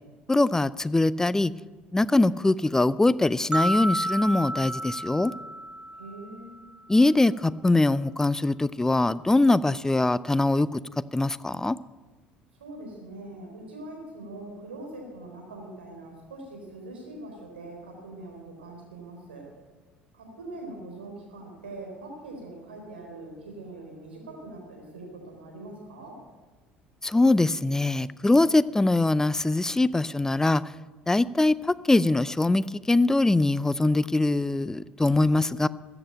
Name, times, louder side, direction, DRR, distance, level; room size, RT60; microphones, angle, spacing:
voice 1, 0.3-1.5 1.9-5.3 6.9-10.8 11.1-11.8 27.0-30.6 31.1-35.7, left 2 dB, 10° left, 19 dB, 0.5 m, -22 dB
sound 1, 3.5-6.6, right 1 dB, 15° right, 1.0 m, -31 dB
voice 2, 5.9-6.6 12.5-19.4 20.1-26.1, right 2 dB, 75° right, 0 dB, 3.8 m, -42 dB
14.0 x 7.9 x 8.9 m, 1.3 s
figure-of-eight pair, 60°, 6 cm